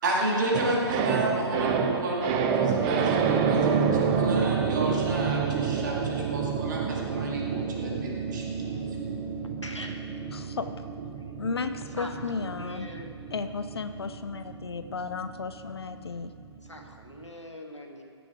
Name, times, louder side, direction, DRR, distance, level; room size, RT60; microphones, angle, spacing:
voice 1, 0.0-3.6 3.9-8.4, right 1 dB, 40° right, -2 dB, 2.2 m, -31 dB
sound 1, 0.5-16.9 17.2-17.3, right 6 dB, 15° right, 0.5 m, -29 dB
voice 2, 9.6-10.0 10.3-10.4 11.9-13.1 16.6-18.0, left 1 dB, 90° left, 3 dB, 1.5 m, -42 dB
voice 3, 10.3-10.7 11.4-12.9 13.3-16.3, left 4 dB, 60° left, 10 dB, 0.5 m, -34 dB
14.5 x 7.0 x 4.7 m, 2.3 s
figure-of-eight pair, 135°, 15 cm